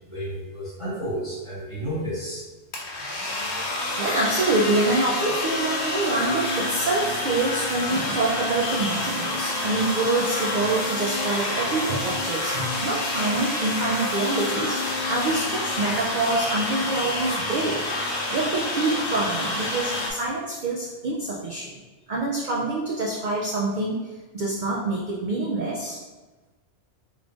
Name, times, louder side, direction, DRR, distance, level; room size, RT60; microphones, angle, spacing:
voice 1, 0.1-2.4, equal, 30° left, -8 dB, 1.2 m, -31 dB
sound 1, 2.7-20.1, left 2 dB, 70° left, 1.0 m, -28 dB
voice 2, 3.9-17.8 18.3-21.7 22.1-26.0, right 2 dB, 60° right, -3 dB, 0.5 m, -26 dB
3.6 x 3.2 x 2.4 m, 1.2 s
omnidirectional pair, 1.2 m